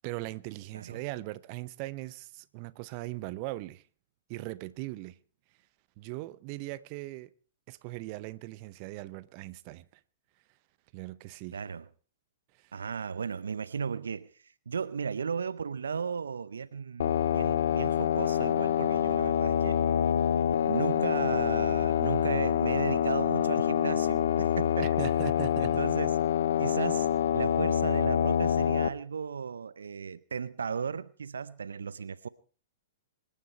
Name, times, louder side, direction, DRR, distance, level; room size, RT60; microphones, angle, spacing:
voice 1, 0.0-3.8 4.3-5.2 6.0-7.3 7.7-9.8 10.9-11.6 24.8-25.8, right 19 dB, 40° right, 0.8 m, -39 dB
voice 2, 0.7-1.0 11.5-11.9 12.7-19.8 20.6-25.1 25.6-26.2 26.6-27.1 27.3-32.3, right 6 dB, 75° right, 0.6 m, -35 dB
sound 1, 17.0-28.9, left 10 dB, 65° left, 0.8 m, -26 dB
26.0 x 10.0 x 4.4 m
figure-of-eight pair, 110°, 0 cm